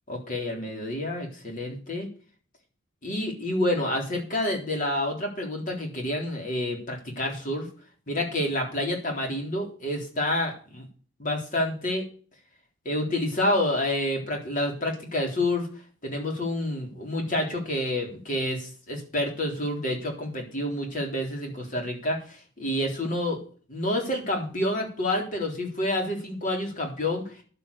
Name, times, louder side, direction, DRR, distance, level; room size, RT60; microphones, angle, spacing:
voice 1, 0.1-2.1 3.0-7.7 8.1-10.9 11.2-12.0 12.9-15.7 16.0-23.4 23.7-27.4, left 1 dB, 40° left, 1 dB, 3.6 m, -28 dB
11.0 x 7.8 x 6.8 m, 0.41 s
head